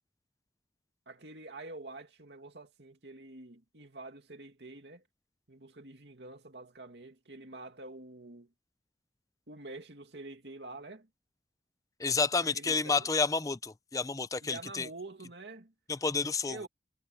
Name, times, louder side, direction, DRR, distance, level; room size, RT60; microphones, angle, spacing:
voice 1, 1.1-5.0 5.5-8.5 9.5-11.1 12.4-13.1 14.4-15.7 16.4-16.7, right 2 dB, 75° right, 2.5 m, -47 dB
voice 2, 12.0-14.9 15.9-16.7, left 4 dB, 20° left, 0.5 m, -30 dB
head